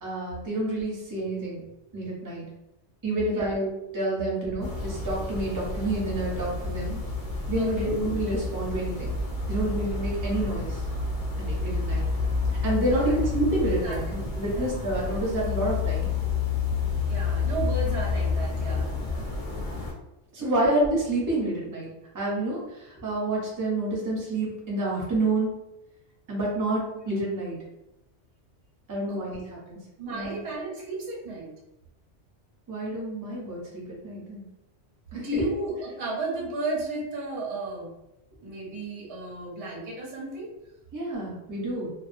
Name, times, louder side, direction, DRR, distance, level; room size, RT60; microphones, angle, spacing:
voice 1, 0.0-1.6 1.9-2.5 3.0-7.0 7.5-9.1 9.5-10.8 11.4-12.0 12.6-16.1 20.3-21.9 22.1-25.5 26.3-27.6 28.9-29.4 29.7-29.8 30.1-30.4 32.7-34.4 35.3-35.4 40.9-41.9, right 1 dB, 25° right, -4 dB, 0.5 m, -28 dB
sound 1, 4.6-19.9, left 4 dB, 40° left, 0.6 m, -29 dB
voice 2, 7.6-7.9 12.9-13.1 13.6-14.0 14.6-14.7 17.0-18.9 20.4-20.6 29.1-29.4 30.0-31.5 33.3-33.4 35.1-37.9 38.4-40.5, right 2 dB, 70° right, -2 dB, 1.0 m, -33 dB
2.3 x 2.1 x 2.5 m, 0.90 s
omnidirectional pair, 1.2 m